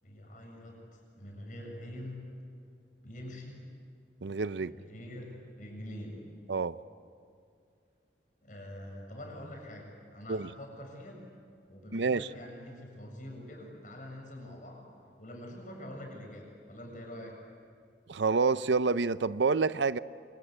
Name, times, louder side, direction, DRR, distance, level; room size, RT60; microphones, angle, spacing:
voice 1, 0.0-2.2 3.0-3.6 4.6-6.2 8.4-11.2 11.7-14.8 15.2-17.4, left 1 dB, 45° left, 0 dB, 7.3 m, -45 dB
voice 2, 4.2-4.7 6.5-6.8 10.3-10.5 11.9-12.3 18.1-20.0, right 4 dB, 75° right, 15 dB, 0.6 m, -28 dB
27.5 x 26.5 x 8.2 m, 2.3 s
head